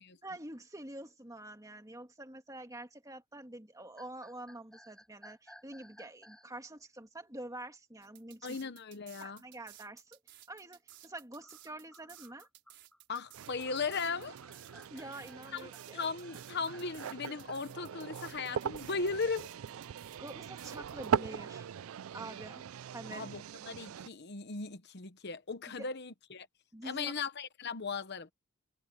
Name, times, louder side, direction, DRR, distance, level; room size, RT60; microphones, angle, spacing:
voice 1, 0.2-8.6 9.2-10.2 10.5-12.5 14.9-16.0 20.2-21.7 22.1-23.3 25.8-25.9 26.7-27.2, right 1 dB, 15° right, 2.5 m, -47 dB
sound 1, 4.0-6.5 10.9-17.6, equal, 5° left, 2.6 m, -58 dB
sound 2, 8.0-21.1, right 13 dB, 60° right, 5.1 m, -56 dB
voice 2, 8.4-9.4 13.1-14.4 15.5-15.6 15.9-19.5 23.1-26.5 26.8-28.3, left 4 dB, 55° left, 1.0 m, -37 dB
sound 3, 13.3-24.1, right 7 dB, 85° right, 0.4 m, -40 dB
head